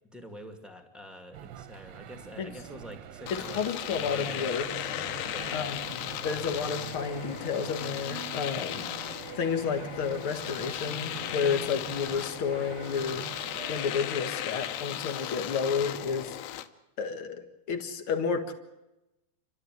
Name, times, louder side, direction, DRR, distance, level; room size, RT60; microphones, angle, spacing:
voice 1, 0.1-4.5 5.2-6.5, equal, ahead, 5 dB, 1.0 m, -46 dB
sound 1, 1.3-13.9, right 12 dB, 90° right, 3.0 m, -45 dB
Domestic sounds home sounds, 3.3-16.7, left 12 dB, 90° left, 3.0 m, -36 dB
voice 2, 3.3-4.9 5.5-8.9 9.4-13.2 13.7-16.3 17.0-18.5, left 6 dB, 50° left, 7 dB, 1.6 m, -31 dB
29.0 x 13.5 x 9.4 m, 0.96 s
omnidirectional pair, 4.6 m